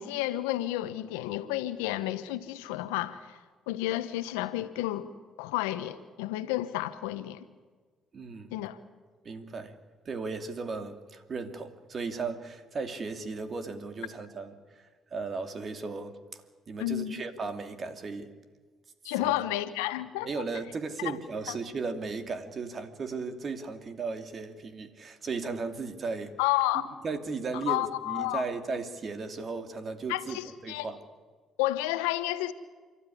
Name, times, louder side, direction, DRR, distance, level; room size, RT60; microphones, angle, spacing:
voice 1, 0.0-3.4 3.7-5.1 5.4-7.5 8.5-8.8 16.8-17.2 19.0-20.5 21.5-21.6 26.4-26.9 27.7-28.4 30.1-30.9 31.6-32.5, left 15 dB, 85° left, 1.1 m, -31 dB
voice 2, 8.1-8.6 9.2-9.8 10.0-16.2 16.7-18.3 19.1-19.3 20.2-26.3 27.0-31.0, right 4 dB, 45° right, 2.6 m, -36 dB
30.0 x 13.0 x 10.0 m
hypercardioid pair, 60°, 0 cm